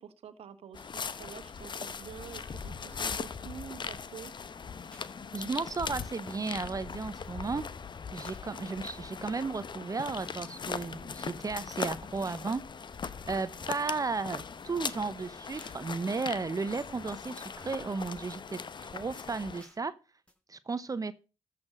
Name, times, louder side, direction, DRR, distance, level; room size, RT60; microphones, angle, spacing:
voice 1, 0.0-4.3, right 8 dB, 65° right, 1.4 m, -47 dB
sound 1, 0.7-19.6, left 6 dB, 45° left, 0.9 m, -40 dB
sound 2, 1.6-1.7 2.2-2.6 2.9-3.2 3.6-3.7 3.9-4.0 4.2-4.3 4.9-5.1 5.6-5.7 6.2-6.6 6.9-7.0 7.2-7.3 7.6-7.7 8.2-8.4 8.9-9.0 9.6-9.9 10.2-10.6 10.9-11.0 11.3-11.4 11.6-11.7 12.3-12.4 12.9-13.0 13.6-13.9 14.3-14.4 14.6-14.7 14.9-15.0 15.6-15.8 16.3-16.4 16.9-17.3 17.6-17.9 18.3-18.4 18.6-18.7 18.9-19.0 19.6-19.8 20.3-20.4, left 2 dB, 10° left, 4.8 m, -56 dB
voice 2, 5.3-7.7 8.1-12.6 13.3-18.6 18.9-19.9 20.5-21.1, right 4 dB, 35° right, 0.8 m, -34 dB
13.5 x 5.9 x 6.4 m
supercardioid pair, 50°, 11 cm